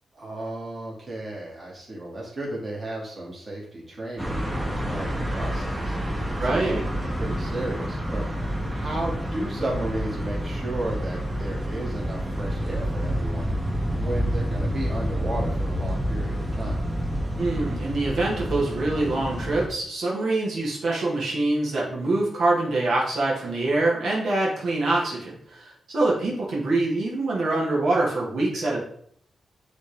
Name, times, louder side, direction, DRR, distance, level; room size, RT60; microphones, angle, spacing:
voice 1, 0.1-8.2 8.7-13.5 13.9-16.8, right 1 dB, 30° right, -5 dB, 2.2 m, -34 dB
sound 1, 4.2-19.7, equal, 10° right, 0.9 m, -28 dB
voice 2, 6.4-6.8 17.4-28.8, right 2 dB, 65° right, -4 dB, 1.6 m, -25 dB
9.6 x 3.4 x 3.4 m, 0.64 s
wide cardioid pair, 170°, 0 cm